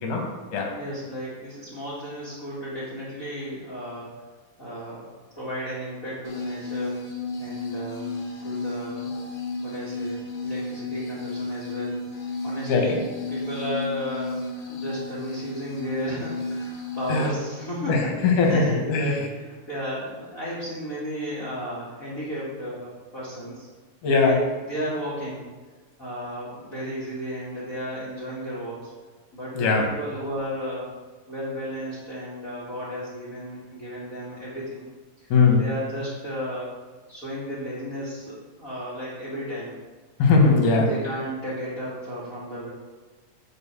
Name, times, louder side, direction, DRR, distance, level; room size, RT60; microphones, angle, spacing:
voice 1, 0.0-0.7 12.7-13.0 17.1-17.3 17.9-19.2 24.0-24.4 29.6-29.9 35.3-35.6 40.2-40.9, left 4 dB, 70° left, 2 dB, 2.8 m, -20 dB
voice 2, 0.8-4.1 4.6-5.0 5.3-7.0 7.4-8.1 8.4-9.2 9.6-12.0 12.4-13.0 13.3-14.4 14.7-23.7 24.1-24.4 24.7-25.5 26.0-28.9 29.3-30.9 31.3-34.9 35.2-36.7 37.1-39.7 40.9-42.7, equal, 30° left, -9 dB, 2.0 m, -34 dB
sound 1, 6.2-17.3, left 3 dB, 50° left, 1.6 m, -33 dB
7.9 x 4.5 x 7.2 m, 1.3 s
omnidirectional pair, 3.9 m